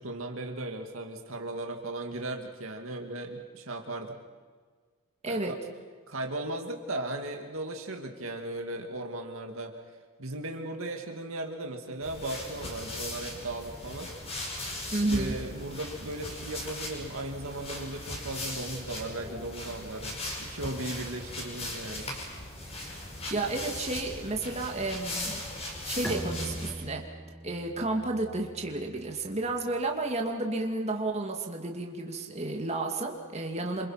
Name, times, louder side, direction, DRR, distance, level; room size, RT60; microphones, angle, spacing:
voice 1, 0.0-4.2 5.3-5.4 6.1-9.7 10.2-14.1 15.0-22.1, right 2 dB, 65° right, 3 dB, 2.3 m, -37 dB
voice 2, 5.2-5.6 14.9-15.4 23.3-25.4 25.8-27.0 27.4-33.9, right 2 dB, 30° right, 2 dB, 2.5 m, -31 dB
sound 1, 12.0-26.7, left 1 dB, 30° left, 5.2 m, -38 dB
Bowed string instrument, 26.0-29.5, right 1 dB, 5° left, 2.0 m, -41 dB
28.0 x 26.0 x 5.9 m, 1.5 s
head